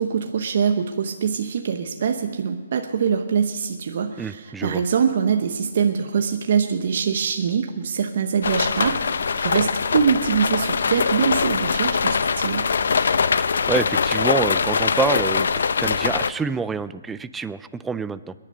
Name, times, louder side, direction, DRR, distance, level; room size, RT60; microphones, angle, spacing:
voice 1, 0.0-12.7, right 7 dB, 55° right, 5 dB, 0.9 m, -23 dB
voice 2, 4.2-4.8 13.7-15.5 15.8-18.3, right 5 dB, 5° right, 14 dB, 0.4 m, -26 dB
sound 1, 8.4-16.3, left 5 dB, 75° left, 0.6 m, -22 dB
21.5 x 10.5 x 5.4 m, 1.3 s
hypercardioid pair, 160°, 0 cm